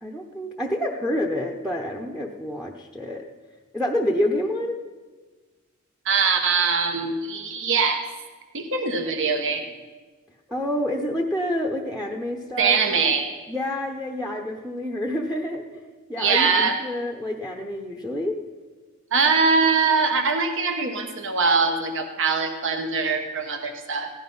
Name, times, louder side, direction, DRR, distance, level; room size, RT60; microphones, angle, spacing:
voice 1, 0.0-3.2 3.7-4.8 10.5-13.0 13.5-15.8 16.1-18.4, left 1 dB, 5° right, 2 dB, 0.8 m, -28 dB
voice 2, 6.0-8.0 8.5-9.6 12.6-13.3 16.2-16.8 19.1-24.1, right 5 dB, 60° right, 5 dB, 1.1 m, -22 dB
16.0 x 11.5 x 5.4 m, 1.4 s
head